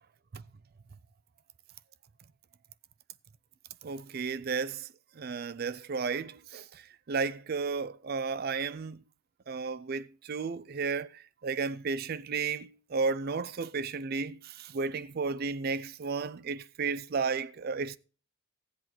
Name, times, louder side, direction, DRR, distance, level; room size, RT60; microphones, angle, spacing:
voice 1, 3.8-4.9 5.2-9.0 9.5-18.0, right 4 dB, 45° right, 0.4 m, -33 dB
14.0 x 8.0 x 4.5 m
head